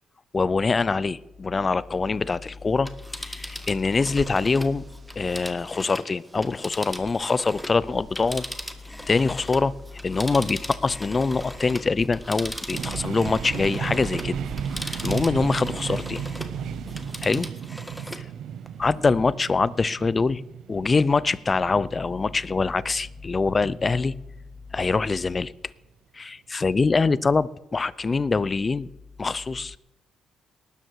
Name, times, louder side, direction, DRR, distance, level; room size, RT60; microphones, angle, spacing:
voice 1, 0.3-2.9 3.2-4.9 5.2-8.4 9.1-9.8 10.0-14.4 14.8-16.2 17.2-17.5 18.8-20.4 20.7-24.1 24.7-25.5 26.1-28.9 29.2-29.8, left 4 dB, 30° left, 20 dB, 0.6 m, -24 dB
Telephone, 2.7-7.8 8.1-16.6 16.9-18.3 18.7-18.8, equal, 5° left, 1.6 m, -39 dB
sound 1, 3.2-17.4, right 3 dB, 25° right, 0.8 m, -44 dB
sound 2, 12.7-24.5, right 8 dB, 75° right, 0.8 m, -35 dB
19.0 x 12.5 x 4.8 m, 0.94 s
cardioid pair, 90°, 0 cm